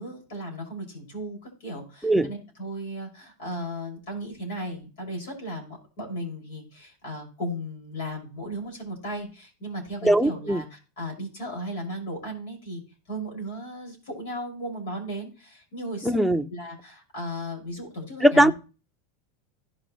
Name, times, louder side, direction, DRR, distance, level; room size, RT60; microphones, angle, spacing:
voice 1, 0.0-12.8 13.1-16.2 16.5-18.5, equal, 80° left, 6.3 m, -36 dB
voice 2, 10.0-10.6 16.0-16.5 18.2-18.5, right 1 dB, ahead, 0.8 m, -20 dB
17.0 x 6.0 x 3.2 m
supercardioid pair, 120°, 0 cm